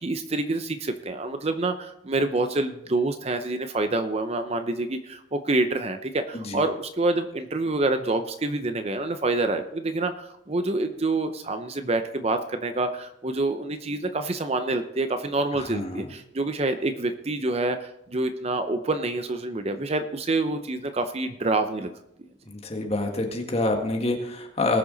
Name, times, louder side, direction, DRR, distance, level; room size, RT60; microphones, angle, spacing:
voice 1, 0.0-21.9, right 2 dB, 30° right, 8 dB, 0.6 m, -27 dB
voice 2, 15.5-16.1 22.5-24.8, left 2 dB, 30° left, 2 dB, 1.7 m, -27 dB
19.5 x 6.9 x 4.0 m, 0.79 s
head